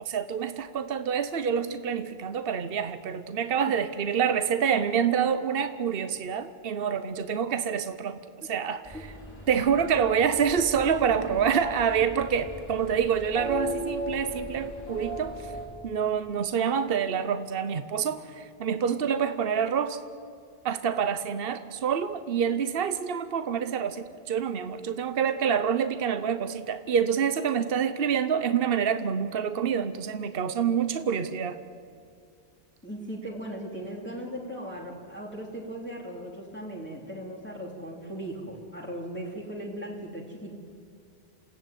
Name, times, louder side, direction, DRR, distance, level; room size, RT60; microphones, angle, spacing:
voice 1, 0.0-9.0 9.5-15.5 15.8-20.0 20.6-31.6, right 7 dB, 65° right, 11 dB, 1.1 m, -27 dB
sound 1, 8.8-15.7, right 1 dB, 35° left, 5.4 m, -37 dB
voice 2, 32.8-40.5, right 1 dB, 10° left, -3 dB, 3.0 m, -38 dB
27.5 x 16.0 x 9.2 m, 2.4 s
omnidirectional pair, 1.1 m